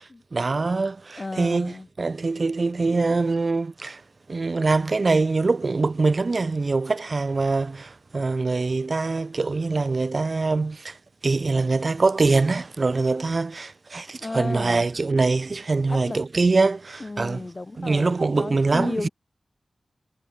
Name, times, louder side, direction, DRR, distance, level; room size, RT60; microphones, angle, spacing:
voice 1, 0.3-4.0 4.3-11.0 11.2-17.4 17.8-19.1, right 3 dB, 55° right, 3.9 m, -23 dB
voice 2, 1.2-1.9 14.2-14.9 15.9-16.2 17.0-19.1, left 2 dB, 40° left, 7.7 m, -33 dB
wide cardioid pair, 65°, 0 cm